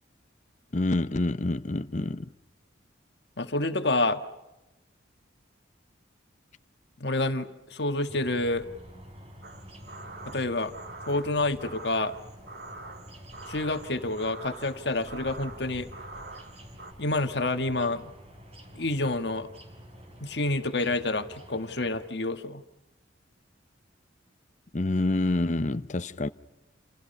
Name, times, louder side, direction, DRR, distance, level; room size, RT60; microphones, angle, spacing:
voice 1, 0.7-2.3 24.7-26.3, left 2 dB, 40° left, 0.8 m, -27 dB
voice 2, 3.4-4.2 7.0-8.7 10.2-10.7 11.1-12.1 13.5-15.9 17.0-18.0 18.7-19.5 20.2-22.6, left 2 dB, 60° left, 1.6 m, -28 dB
sound 1, 8.1-22.1, equal, 30° right, 4.7 m, -48 dB
sound 2, 9.4-16.9, right 2 dB, 55° right, 2.7 m, -45 dB
29.0 x 28.0 x 5.5 m
head